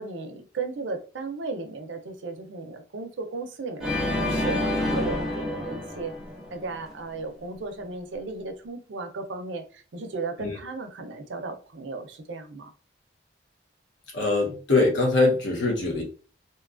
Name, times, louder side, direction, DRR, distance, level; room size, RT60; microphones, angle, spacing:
voice 1, 0.0-6.1 6.5-12.7, right 3 dB, 70° right, 0.5 m, -35 dB
Organ, 3.8-6.9, left 1 dB, ahead, 0.5 m, -28 dB
voice 2, 14.1-16.0, left 3 dB, 75° left, 0.9 m, -23 dB
2.8 x 2.3 x 2.4 m
head